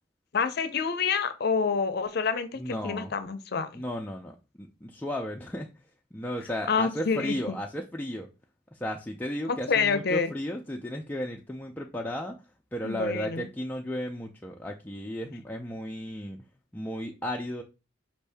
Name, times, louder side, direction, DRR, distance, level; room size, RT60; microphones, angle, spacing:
voice 1, 0.3-3.7 6.7-7.6 9.5-10.3 12.8-13.5, left 5 dB, 60° left, 0.6 m, -27 dB
voice 2, 2.6-3.1 3.7-5.7 6.1-8.3 8.7-12.4 12.7-16.5 16.7-17.6, equal, 10° left, 0.4 m, -34 dB
5.2 x 2.7 x 3.3 m
head